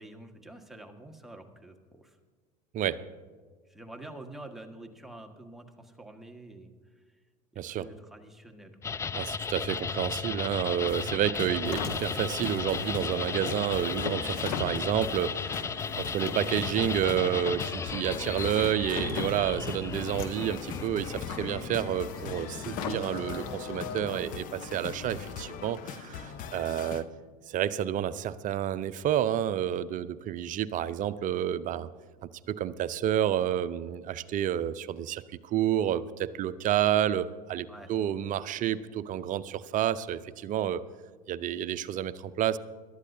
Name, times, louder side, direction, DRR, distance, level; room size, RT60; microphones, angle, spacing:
voice 1, 0.0-2.2 3.7-7.0 7.5-9.0 22.6-22.8 37.7-37.9, right 1 dB, ahead, 2 dB, 1.5 m, -47 dB
voice 2, 7.6-7.9 9.1-27.0 27.5-31.9 32.5-40.8 41.3-42.6, right 10 dB, 40° right, 15 dB, 0.6 m, -30 dB
sound 1, 8.8-24.4, left 6 dB, 15° left, 0.3 m, -36 dB
sound 2, 10.9-27.0, left 8 dB, 40° left, 0.9 m, -42 dB
Car, 11.6-27.0, left 5 dB, 65° left, 1.5 m, -40 dB
22.0 x 12.5 x 2.7 m, 1.5 s
hypercardioid pair, 75°, 20 cm